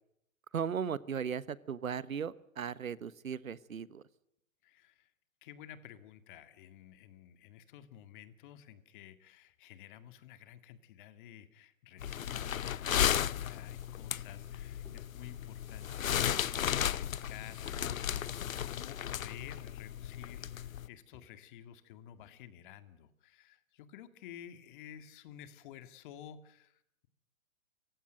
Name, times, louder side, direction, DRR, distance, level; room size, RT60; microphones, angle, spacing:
voice 1, 0.5-4.0, right 7 dB, 90° right, 18 dB, 1.3 m, -37 dB
voice 2, 4.6-5.1 5.4-27.1, left 10 dB, 40° left, 11 dB, 2.1 m, -52 dB
sound 1, 12.0-20.9, left 10 dB, 80° left, 0.8 m, -35 dB
sound 2, 14.8-15.4 16.5-17.3 17.5-18.4 19.0-19.7 20.6-21.6 22.2-22.3, left 3 dB, 5° left, 4.2 m, -62 dB
28.0 x 16.0 x 7.9 m, 0.75 s
hypercardioid pair, 140°, 40 cm